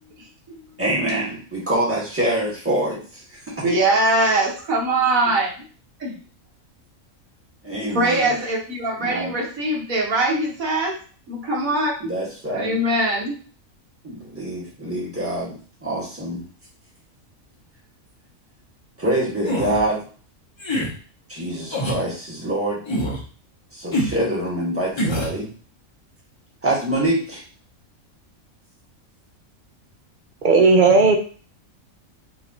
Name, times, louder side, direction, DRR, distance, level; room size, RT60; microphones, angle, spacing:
voice 1, 0.8-3.6 7.6-8.3 9.0-9.4 12.0-12.8 14.0-16.4 19.0-20.0 21.3-22.8 23.7-25.5 26.6-27.4, right 1 dB, 10° right, -5 dB, 1.6 m, -25 dB
voice 2, 3.6-5.6 6.0-6.2 7.8-11.0 11.3-12.1 12.5-13.4, right 2 dB, 75° right, -2 dB, 1.8 m, -22 dB
sound 1, 19.4-19.8 20.6-20.9 21.7-22.0 22.9-23.2 23.9-24.2 25.0-25.4, equal, 25° left, 0.9 m, -24 dB
voice 3, 30.4-31.2, right 4 dB, 45° right, 4 dB, 0.7 m, -14 dB
5.6 x 3.0 x 2.9 m, 0.39 s
omnidirectional pair, 1.4 m